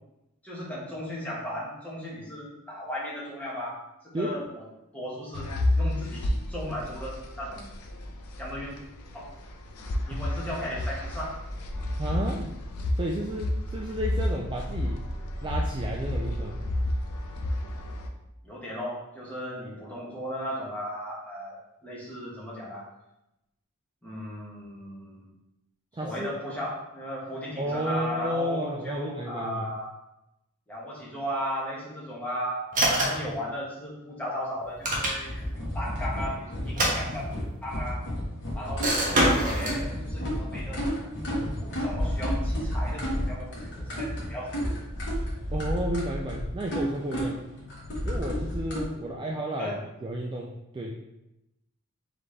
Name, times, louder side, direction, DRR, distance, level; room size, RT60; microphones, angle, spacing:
voice 1, 0.4-3.8 4.2-4.4 4.9-7.7 8.4-8.8 9.1-9.3 9.8-11.4 11.7-11.9 18.4-22.9 24.0-25.3 26.0-29.9 30.7-37.3 37.6-38.1 38.5-41.1 41.6-44.8 45.5-45.6 49.6-49.8, equal, 5° left, -7 dB, 1.2 m, -36 dB
sound 1, 5.3-18.1, left 1 dB, 85° left, 0.5 m, -31 dB
voice 2, 12.0-12.5 12.9-15.0 15.4-16.6 25.9-26.3 27.6-29.7 45.5-47.4 48.1-50.9, right 1 dB, 20° right, -2 dB, 0.3 m, -32 dB
sound 2, 32.7-33.3 34.6-35.5 36.6-37.6 38.8-39.8, right 1 dB, 35° right, 1.0 m, -25 dB
sound 3, 35.2-48.8, equal, 55° left, 1.3 m, -31 dB
3.9 x 3.4 x 3.2 m, 0.90 s
head